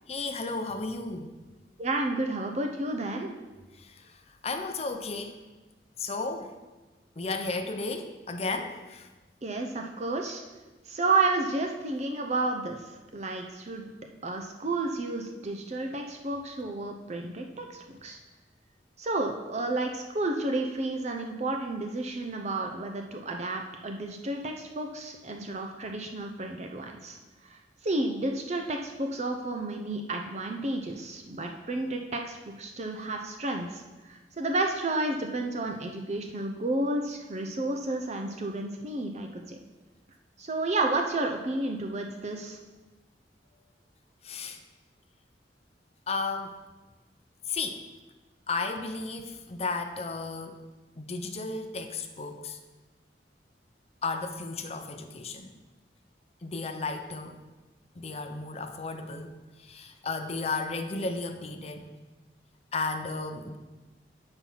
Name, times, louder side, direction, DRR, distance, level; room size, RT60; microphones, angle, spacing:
voice 1, 0.1-1.3 3.8-5.4 6.0-6.6 7.2-9.1 44.2-44.6 46.1-46.5 47.5-47.8 48.5-50.6 51.0-52.6 54.0-55.5 56.4-57.4 58.0-61.9 62.7-63.6, left 3 dB, 35° left, 6 dB, 0.7 m, -34 dB
voice 2, 1.8-3.4 9.4-10.4 10.9-12.8 13.1-13.9 14.2-18.2 19.0-27.2 27.5-39.6 40.4-42.6, right 2 dB, 40° right, 3 dB, 0.6 m, -31 dB
8.7 x 4.4 x 5.6 m, 1.2 s
head